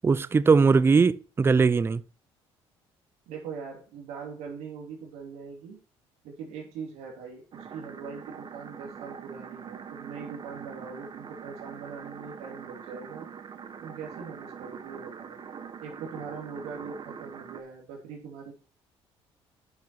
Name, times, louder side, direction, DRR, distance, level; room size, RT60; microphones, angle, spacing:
voice 1, 0.0-2.0, right 4 dB, 20° right, 0.4 m, -20 dB
voice 2, 3.3-5.8 6.2-13.3 13.8-15.4 15.8-18.5, right 5 dB, 85° right, 2.9 m, -41 dB
sound 1, 7.5-17.6, right 7 dB, 45° right, 1.0 m, -43 dB
9.5 x 5.8 x 4.5 m
cardioid pair, 95°, 11 cm